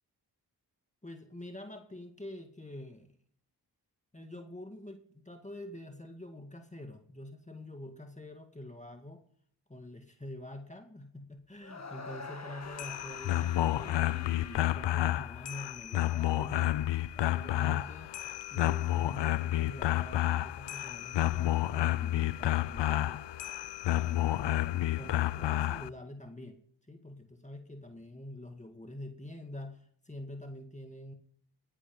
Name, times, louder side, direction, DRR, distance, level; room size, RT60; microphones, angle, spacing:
voice 1, 1.0-3.1 4.1-9.2 9.7-16.8 17.1-18.1 18.5-26.6 26.9-31.1, left 1 dB, 15° left, 5 dB, 2.0 m, -46 dB
sound 1, 11.6-15.8, left 4 dB, 40° left, 1.9 m, -47 dB
sound 2, 12.6-25.9, left 14 dB, 80° left, 0.6 m, -30 dB
18.0 x 10.5 x 5.4 m, 0.64 s
cardioid pair, 40°, 42 cm